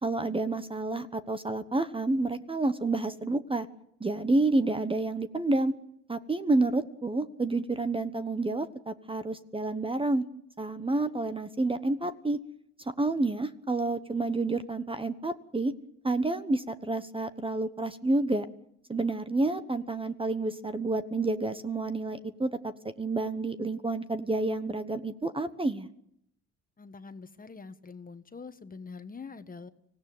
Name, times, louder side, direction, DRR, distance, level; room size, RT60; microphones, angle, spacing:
voice 1, 0.0-3.7 4.0-5.7 6.1-10.2 10.6-12.4 13.0-15.7 16.0-18.5 18.9-22.7 23.0-25.9, right 2 dB, 15° right, 11 dB, 1.1 m, -29 dB
voice 2, 26.8-29.7, left 4 dB, 30° left, 10 dB, 1.4 m, -44 dB
25.0 x 16.5 x 9.2 m, 0.74 s
cardioid pair, 90°, 30 cm